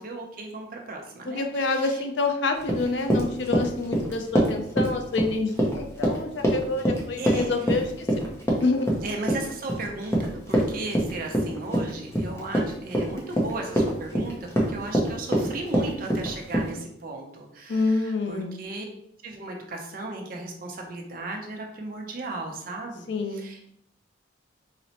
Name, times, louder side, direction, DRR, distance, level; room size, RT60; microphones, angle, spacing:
voice 1, 0.0-1.8 7.2-7.5 9.0-18.8 19.2-23.0 23.3-23.7, right 2 dB, 45° right, 1 dB, 0.5 m, -36 dB
voice 2, 1.3-8.1 8.6-8.9 17.7-18.6 23.1-23.4, left 3 dB, 65° left, 5 dB, 0.4 m, -27 dB
Run, 2.6-16.7, equal, 15° left, 0.5 m, -25 dB
4.0 x 2.0 x 2.8 m, 0.73 s
head